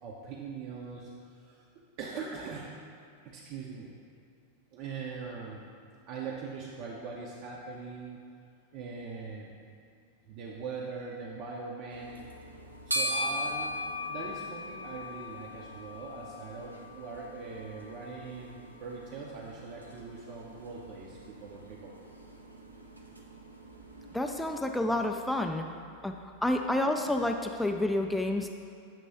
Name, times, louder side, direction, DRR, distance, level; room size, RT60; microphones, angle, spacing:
voice 1, 0.0-1.7 2.0-2.7 3.2-3.9 4.7-5.7 6.0-8.2 8.7-9.5 10.3-12.3 12.9-22.0, right 4 dB, 45° right, -2 dB, 0.6 m, -41 dB
sound 1, 11.9-24.4, left 1 dB, 85° right, 0.6 m, -40 dB
voice 2, 24.1-25.6 26.0-26.1 26.4-28.5, left 1 dB, 5° left, 3 dB, 0.3 m, -29 dB
7.3 x 3.0 x 5.4 m, 2.4 s
figure-of-eight pair, 90°, 0 cm